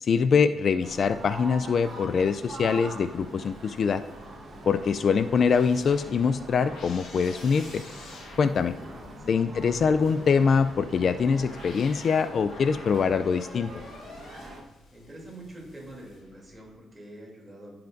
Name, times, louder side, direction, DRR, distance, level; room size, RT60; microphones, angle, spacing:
voice 1, 0.0-4.0 4.7-7.8 8.4-8.7 9.3-13.7, left 6 dB, 50° left, 11 dB, 0.3 m, -24 dB
sound 1, 0.8-14.6, right 2 dB, 55° right, 1.3 m, -44 dB
sound 2, 1.2-16.7, left 2 dB, 70° left, 1.5 m, -48 dB
voice 2, 8.7-9.6 14.9-17.8, right 1 dB, 25° right, -3 dB, 2.8 m, -46 dB
15.0 x 5.8 x 2.6 m, 1.1 s
cardioid pair, 110°, 0 cm